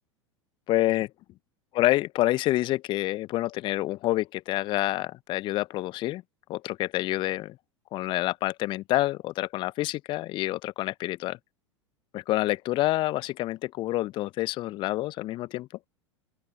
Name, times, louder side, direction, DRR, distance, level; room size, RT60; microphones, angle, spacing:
voice 1, 0.7-1.1 1.8-6.2 6.5-7.6 7.9-11.4 12.1-15.7, left 17 dB, 30° left, 0.6 m, -27 dB
open air
figure-of-eight pair, 85°, 15 cm